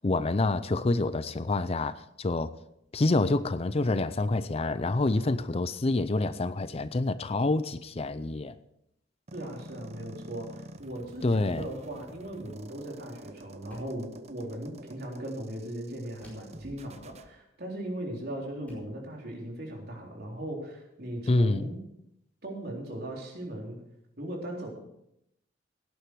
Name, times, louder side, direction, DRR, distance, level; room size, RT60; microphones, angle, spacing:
voice 1, 0.0-2.5 2.9-8.6 11.2-11.7 21.3-21.7, left 2 dB, 30° left, 14 dB, 0.5 m, -27 dB
sound 1, 9.3-17.3, right 1 dB, 35° right, 0.8 m, -48 dB
voice 2, 9.3-21.8 22.4-23.8 24.2-24.7, right 1 dB, 55° right, -1 dB, 4.0 m, -38 dB
sound 2, 13.7-14.1 16.2-16.6 18.0-18.1 18.7-19.0, equal, 10° left, 4.6 m, -53 dB
17.0 x 10.0 x 4.8 m, 0.80 s
head